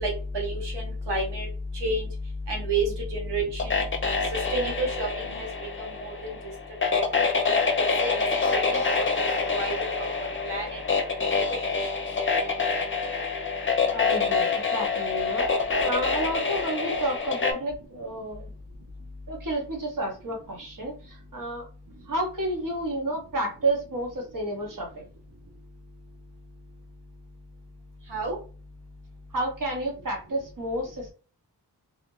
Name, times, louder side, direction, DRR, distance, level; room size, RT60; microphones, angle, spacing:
voice 1, 0.0-1.5 1.7-2.1 2.5-3.7 4.5-5.5 6.0-6.1 6.9-7.0 8.0-8.2 8.5-9.1 9.4-10.1 10.4-10.8 28.1-28.4, right 2 dB, 90° right, -1 dB, 0.8 m, -29 dB
sound 1, 3.6-17.5, left 4 dB, 30° left, 0.5 m, -26 dB
voice 2, 13.9-15.5 15.8-18.4 19.3-21.7 22.1-25.1 29.3-31.1, right 1 dB, 50° right, 1 dB, 0.9 m, -30 dB
2.4 x 2.1 x 2.9 m, 0.37 s
wide cardioid pair, 55°, 40 cm